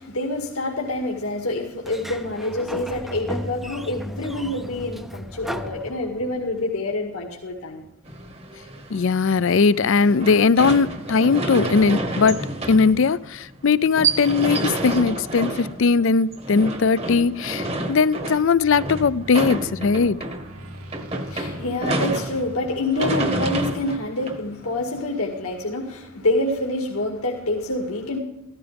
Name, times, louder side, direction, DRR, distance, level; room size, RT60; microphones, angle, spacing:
voice 1, 0.0-7.8 21.2-28.2, left 2 dB, 80° left, 2.0 m, -27 dB
Sliding door, 1.8-6.5, equal, ahead, 0.5 m, -35 dB
sound 1, 8.1-25.0, right 2 dB, 25° right, 1.0 m, -29 dB
voice 2, 8.9-12.4 12.7-20.2, left 5 dB, 55° left, 0.4 m, -19 dB
sound 2, 18.5-23.8, equal, 80° right, 2.1 m, -40 dB
14.5 x 13.5 x 3.5 m
head